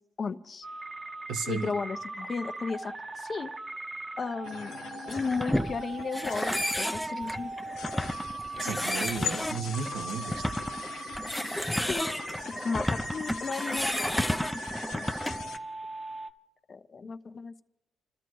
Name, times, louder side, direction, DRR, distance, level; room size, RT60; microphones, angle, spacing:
voice 1, 0.2-0.7 1.5-3.5 4.2-4.8 5.1-7.6 11.9-12.1 12.6-15.2 16.7-17.6, left 4 dB, 40° left, 9 dB, 0.8 m, -35 dB
sound 1, 0.6-16.3, right 3 dB, 30° right, 0.9 m, -40 dB
voice 2, 1.3-1.7 8.6-10.4, right 5 dB, 90° right, 4 dB, 1.4 m, -34 dB
sound 2, 4.4-15.6, left 8 dB, 80° left, 1.1 m, -42 dB
sound 3, 5.1-15.6, left 1 dB, 5° left, 0.6 m, -32 dB
29.5 x 13.0 x 3.1 m, 0.85 s
cardioid pair, 90°, 0 cm